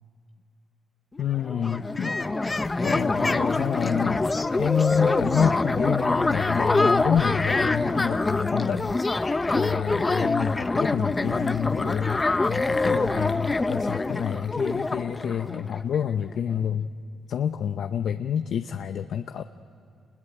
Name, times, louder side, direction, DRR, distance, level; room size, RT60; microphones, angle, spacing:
voice 1, 1.2-2.2 2.8-8.9 9.2-16.9 17.3-19.4, left 8 dB, 65° left, 9 dB, 0.6 m, -28 dB
sound 1, 1.2-1.3 1.4-16.0, left 3 dB, 20° left, 0.7 m, -25 dB
26.5 x 21.0 x 9.3 m, 2.4 s
cardioid pair, 90°, 0 cm